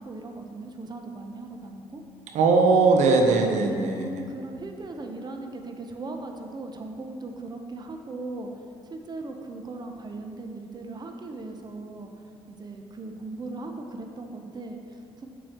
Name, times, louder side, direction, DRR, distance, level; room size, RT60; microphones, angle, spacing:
voice 1, 0.0-2.0 3.6-8.5 8.9-12.1 12.5-15.3, right 2 dB, 35° right, 4 dB, 0.9 m, -38 dB
voice 2, 2.3-4.1, right 4 dB, 70° right, 3 dB, 0.8 m, -20 dB
8.2 x 7.6 x 3.0 m, 2.3 s
hypercardioid pair, 55°, 13 cm